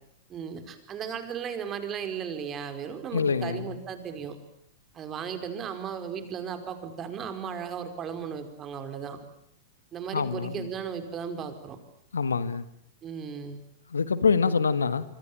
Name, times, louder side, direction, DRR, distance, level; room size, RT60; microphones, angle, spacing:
voice 1, 0.3-4.4 4.9-9.2 9.9-11.8 13.0-13.6, right 7 dB, 30° right, 5.0 m, -36 dB
voice 2, 3.1-3.7 10.1-10.7 12.1-12.6 13.9-15.0, left 5 dB, 80° left, 1.5 m, -25 dB
26.5 x 25.0 x 8.9 m
figure-of-eight pair, 105°, 0 cm